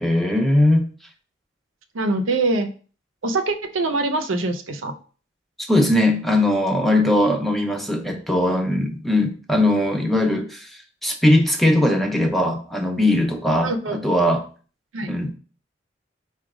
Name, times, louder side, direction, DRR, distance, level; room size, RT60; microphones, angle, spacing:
voice 1, 0.0-0.9 5.6-14.5 15.1-15.3, left 1 dB, ahead, 3 dB, 0.5 m, -20 dB
voice 2, 1.9-2.7 3.2-4.9 13.6-14.0 14.9-15.1, right 2 dB, 90° right, 7 dB, 0.6 m, -23 dB
4.9 x 2.2 x 4.8 m, 0.39 s
head